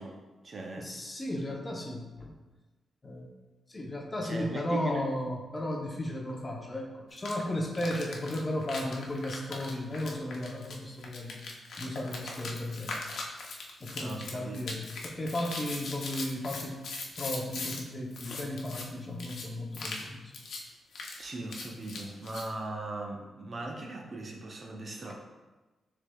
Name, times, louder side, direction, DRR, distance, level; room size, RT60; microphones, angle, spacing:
voice 1, 0.0-0.9 4.2-5.1 14.0-14.6 21.2-25.1, right 2 dB, 35° right, 1 dB, 0.5 m, -39 dB
voice 2, 0.8-2.3 3.0-3.3 3.7-11.4 11.8-13.0 13.8-16.9 17.2-20.3 25.1-25.2, left 1 dB, 25° left, 0 dB, 0.6 m, -35 dB
sound 1, 7.2-7.3 7.7-17.8 18.1-18.8 19.2-19.4 19.7-20.1 20.3-20.6 20.9-22.5, left 3 dB, 70° left, 0.7 m, -40 dB
6.5 x 3.4 x 2.2 m, 1.2 s
wide cardioid pair, 135°, 0 cm